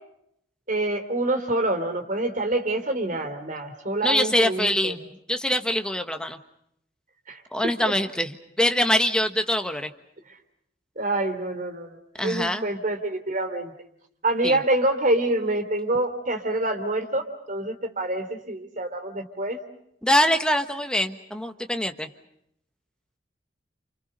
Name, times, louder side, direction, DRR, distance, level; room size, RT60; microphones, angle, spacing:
voice 1, 0.7-4.9 7.3-7.4 7.8-7.9 11.0-13.7 14.2-19.6, right 2 dB, 45° right, 7 dB, 3.3 m, -26 dB
voice 2, 4.0-5.0 5.3-6.4 7.5-9.9 12.2-12.7 14.4-14.6 20.0-22.1, left 1 dB, 5° left, 6 dB, 1.3 m, -24 dB
30.0 x 28.0 x 5.4 m, 0.73 s
head